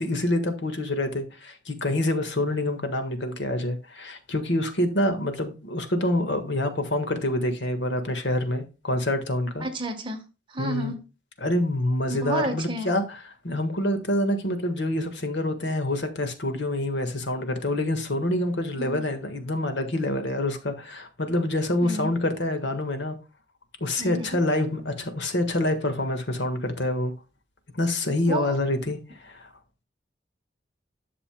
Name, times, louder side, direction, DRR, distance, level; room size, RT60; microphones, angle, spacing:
voice 1, 0.0-9.7 10.6-10.9 11.4-13.2 13.4-23.2 23.8-27.1 27.7-29.5, left 1 dB, 75° left, 1.5 m, -26 dB
voice 2, 9.6-10.2 10.5-11.0 12.1-12.9 18.8-19.0 21.8-22.2 24.0-24.4 28.3-28.5, right 1 dB, 25° right, 1.2 m, -31 dB
10.5 x 6.7 x 2.2 m
head